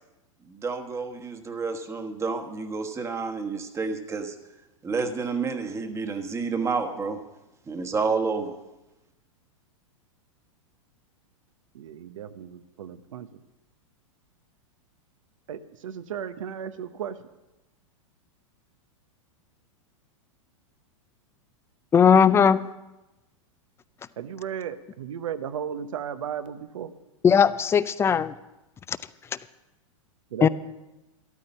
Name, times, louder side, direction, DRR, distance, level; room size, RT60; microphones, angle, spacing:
voice 1, 0.5-4.4 4.8-7.2 7.7-8.6, right 4 dB, 15° right, 5 dB, 1.2 m, -29 dB
voice 2, 11.7-13.3 15.5-17.3 24.2-26.9 30.3-30.5, right 8 dB, 80° right, 12 dB, 0.9 m, -35 dB
voice 3, 21.9-22.6 27.2-28.3 28.9-29.0 30.4-30.5, left 7 dB, 15° left, 17 dB, 0.4 m, -18 dB
13.0 x 12.0 x 5.4 m, 1.0 s
hypercardioid pair, 120°, 17 cm